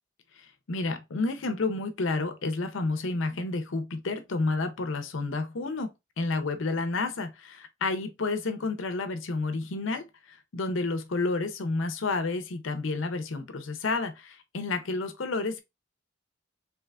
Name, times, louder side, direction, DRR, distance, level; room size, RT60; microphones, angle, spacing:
voice 1, 0.4-15.6, left 3 dB, 80° left, 0.6 m, -30 dB
3.3 x 3.1 x 2.4 m
head